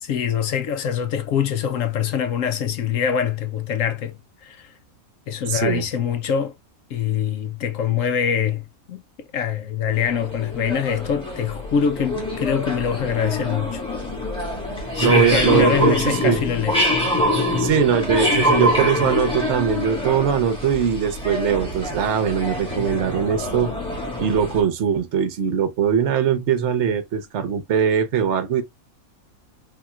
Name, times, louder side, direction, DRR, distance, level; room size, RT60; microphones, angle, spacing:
voice 1, 0.0-4.1 4.4-4.7 5.3-6.5 6.9-13.8 14.9-16.9, left 8 dB, 70° left, 1.0 m, -24 dB
voice 2, 5.5-5.8 15.0-16.4 17.6-23.7 24.2-28.6, right 7 dB, 55° right, 1.0 m, -21 dB
sound 1, 9.9-24.6, left 1 dB, 5° left, 1.7 m, -25 dB
4.2 x 3.6 x 2.3 m
omnidirectional pair, 1.5 m